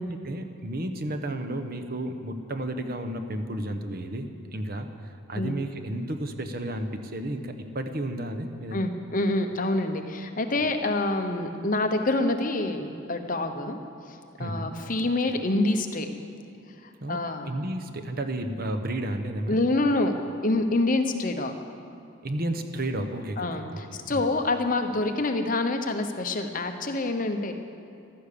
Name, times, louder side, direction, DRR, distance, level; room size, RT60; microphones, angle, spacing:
voice 1, 0.0-8.8 14.4-14.7 17.0-19.6 22.2-24.3, right 1 dB, 45° right, 6 dB, 1.0 m, -32 dB
voice 2, 8.7-13.8 14.1-16.1 16.8-17.5 19.5-20.1 20.4-21.5 23.4-27.5, left 2 dB, 40° left, 6 dB, 0.9 m, -26 dB
15.0 x 12.0 x 6.8 m, 2.5 s
head